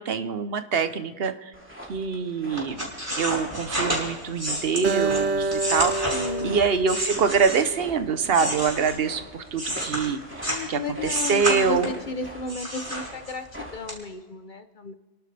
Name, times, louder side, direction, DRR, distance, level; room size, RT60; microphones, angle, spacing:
voice 1, 0.0-1.3 1.9-2.9 3.2-10.2 10.7-11.9, right 6 dB, 65° right, 10 dB, 1.0 m, -25 dB
sound 1, 1.5-14.0, equal, 10° right, 2.4 m, -42 dB
sound 2, 2.6-7.8 8.3-10.7 11.0-12.1 12.5-13.5 13.9-14.0, equal, 30° right, 5.1 m, -30 dB
Acoustic guitar, 4.8-8.2, right 4 dB, 85° right, 1.4 m, -28 dB
voice 2, 6.1-6.6 10.5-14.9, left 4 dB, 50° left, 8 dB, 0.9 m, -33 dB
29.5 x 11.5 x 3.4 m, 1.3 s
omnidirectional pair, 1.1 m